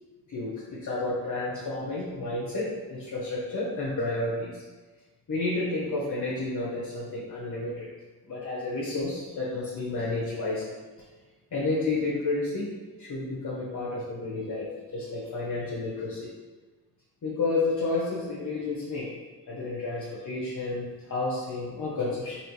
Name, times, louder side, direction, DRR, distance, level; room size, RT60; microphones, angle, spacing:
voice 1, 0.3-4.5 5.3-7.9 8.3-10.6 11.5-12.7 13.0-16.2 17.2-19.1 19.5-22.4, left 2 dB, 55° left, -6 dB, 0.8 m, -31 dB
4.1 x 2.8 x 3.1 m, 1.3 s
cardioid pair, 80°, 36 cm